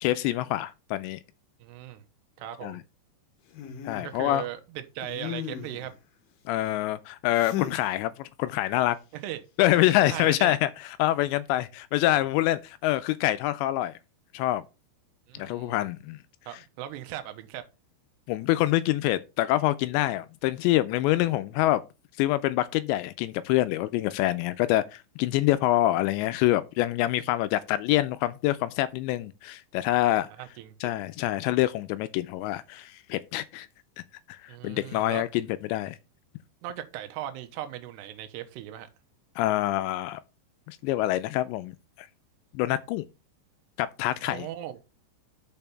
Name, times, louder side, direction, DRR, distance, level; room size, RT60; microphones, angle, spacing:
voice 1, 0.0-1.2 2.6-2.8 3.8-4.4 6.5-9.0 9.6-10.7 11.0-13.9 14.3-14.6 15.3-16.2 18.3-21.8 22.2-30.3 30.8-33.7 34.3-36.0 39.4-40.2 40.7-42.1 42.5-43.1 43.8-44.5, left 15 dB, 85° left, 2.7 m, -26 dB
voice 2, 1.6-2.0 2.4-2.8 4.0-5.9 9.2-9.4 10.1-10.6 15.3-15.9 16.5-17.6 30.4-30.9 34.5-35.3 36.6-38.9 44.2-44.8, right 12 dB, 80° right, 2.8 m, -38 dB
sound 1, 3.5-4.1 5.0-5.9 7.3-7.8 9.8-10.2, left 10 dB, 65° left, 2.3 m, -36 dB
6.8 x 5.4 x 5.8 m
omnidirectional pair, 5.2 m